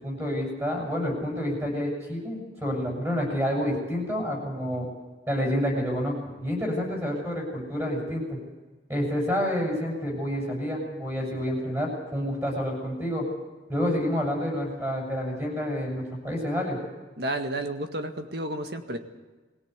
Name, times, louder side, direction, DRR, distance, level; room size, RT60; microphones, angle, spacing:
voice 1, 0.0-4.9 5.3-8.4 8.9-13.2 13.7-16.8, equal, 15° right, -1 dB, 7.8 m, -28 dB
voice 2, 17.2-19.0, right 1 dB, 55° right, 6 dB, 1.9 m, -31 dB
22.0 x 17.0 x 8.2 m, 1.3 s
head